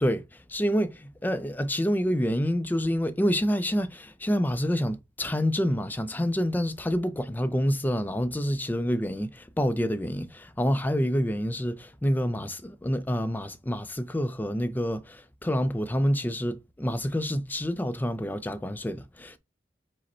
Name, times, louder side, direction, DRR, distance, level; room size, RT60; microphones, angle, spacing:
voice 1, 0.5-19.4, equal, 10° left, 0.4 m, -27 dB
4.9 x 2.1 x 4.2 m
head